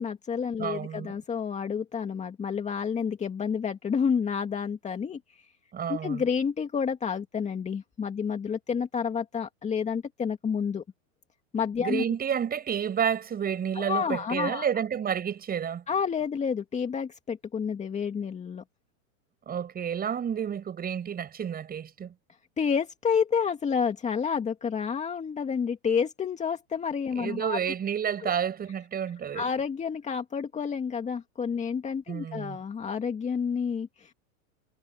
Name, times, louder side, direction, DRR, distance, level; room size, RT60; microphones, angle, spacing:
voice 1, 0.0-5.2 5.9-10.8 11.5-12.0 13.8-14.7 15.9-18.6 22.6-27.6 28.2-28.3 29.3-34.1, left 6 dB, 15° left, 2.4 m, -29 dB
voice 2, 0.6-1.1 5.7-6.2 11.8-15.8 19.5-22.1 27.2-29.4 32.1-32.6, right 8 dB, 20° right, 8.0 m, -30 dB
hypercardioid pair, 130°, 40 cm